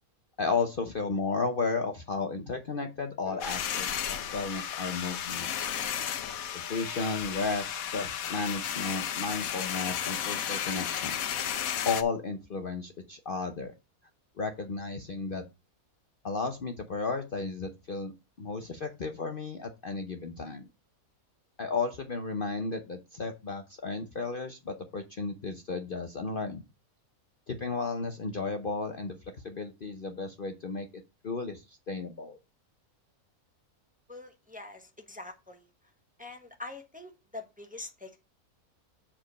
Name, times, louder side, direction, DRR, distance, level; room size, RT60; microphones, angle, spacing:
voice 1, 0.4-5.7 6.5-11.1 11.9-13.7 14.4-15.4 16.2-18.1 18.4-20.7 21.6-26.6 27.5-29.1 29.4-30.9 31.2-32.4, left 4 dB, 45° left, 0.9 m, -33 dB
sound 1, 3.3-5.8 8.0-8.1, right 1 dB, 80° right, 2.0 m, -55 dB
sound 2, 3.4-12.0, left 9 dB, 75° left, 1.2 m, -33 dB
voice 2, 34.1-35.7 36.2-38.2, left 3 dB, 5° right, 1.0 m, -44 dB
7.5 x 4.3 x 6.3 m
omnidirectional pair, 1.5 m